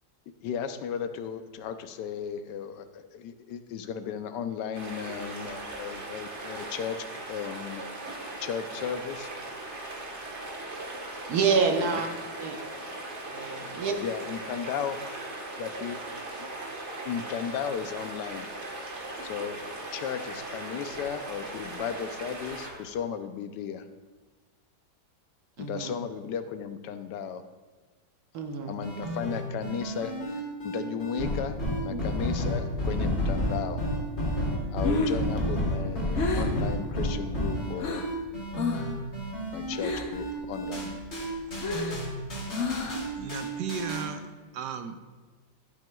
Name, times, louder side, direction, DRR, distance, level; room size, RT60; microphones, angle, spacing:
voice 1, 0.4-9.3 11.9-12.0 14.0-15.0 15.6-16.0 16.4-16.5 17.0-18.5 19.2-19.6 19.9-23.8 25.6-27.4 28.7-31.6 31.8-33.8 34.7-38.0 39.5-40.9, left 8 dB, 80° left, 9 dB, 1.2 m, -35 dB
sound 1, 4.7-22.9, right 2 dB, 45° right, 1.5 m, -39 dB
voice 2, 11.3-12.1 12.4-12.6 13.3-13.9 25.6-25.9 28.3-28.8 31.9-32.0, right 5 dB, 65° right, 4 dB, 1.3 m, -27 dB
sound 2, 28.8-44.1, equal, 35° left, 2.7 m, -31 dB
Breathing, 34.6-38.2 38.5-39.0 39.3-40.3 40.6-43.2, left 3 dB, 55° left, 1.1 m, -31 dB
voice 3, 43.2-44.2 44.5-45.0, right 7 dB, 80° right, 9 dB, 1.2 m, -35 dB
11.5 x 9.0 x 2.3 m, 1.3 s
omnidirectional pair, 1.9 m